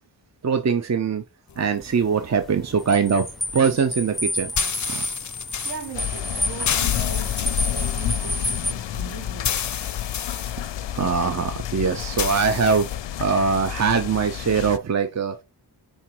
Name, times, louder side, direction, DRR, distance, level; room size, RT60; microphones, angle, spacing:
voice 1, 0.4-1.2 1.6-3.3 3.5-4.5 4.8-5.1 10.9-12.9 13.2-15.4, right 5 dB, 40° right, 0.7 m, -22 dB
sound 1, 1.5-13.0, left 8 dB, 45° left, 0.5 m, -33 dB
sound 2, 1.8-8.7, left 1 dB, ahead, 0.6 m, -30 dB
voice 2, 5.6-9.7, right 6 dB, 70° right, 2.6 m, -40 dB
sound 3, 5.9-14.8, left 11 dB, 90° left, 0.6 m, -30 dB
5.6 x 3.7 x 4.6 m
wide cardioid pair, 105°, 42 cm